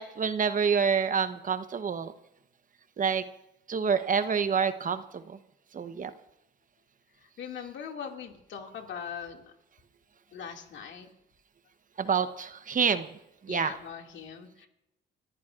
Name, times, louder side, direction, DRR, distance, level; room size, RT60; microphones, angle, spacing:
voice 1, 0.0-2.1 3.0-3.2 3.7-5.4 5.7-6.1 12.0-13.1 13.4-13.7, right 6 dB, 40° right, 11 dB, 0.9 m, -27 dB
voice 2, 7.4-9.5 10.3-11.1 13.5-14.7, left 7 dB, 70° left, 2 dB, 2.2 m, -41 dB
27.0 x 14.5 x 2.5 m, 0.89 s
cardioid pair, 90°, 20 cm